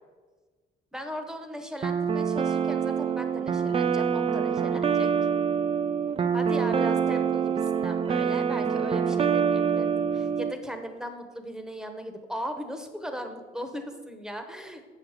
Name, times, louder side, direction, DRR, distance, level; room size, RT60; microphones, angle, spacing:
voice 1, 0.9-5.1 6.3-14.8, equal, 5° right, 6 dB, 0.9 m, -37 dB
sound 1, 1.8-10.5, right 7 dB, 30° right, 0.4 m, -26 dB
7.3 x 5.8 x 4.9 m, 1.4 s
cardioid pair, 90°, 20 cm